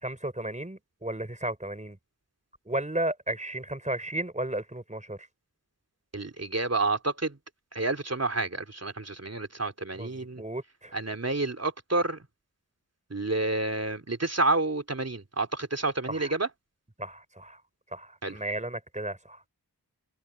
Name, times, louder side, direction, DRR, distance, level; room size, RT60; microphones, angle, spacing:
voice 1, 0.0-2.0 2.7-5.3 9.9-10.9 16.1-16.3 17.0-17.6 17.9-19.4, right 1 dB, 20° right, 4.1 m, -34 dB
voice 2, 6.1-7.4 7.7-10.4 10.9-12.2 13.1-16.5 18.2-18.4, right 2 dB, 40° right, 3.2 m, -29 dB
wide cardioid pair, 50°, 39 cm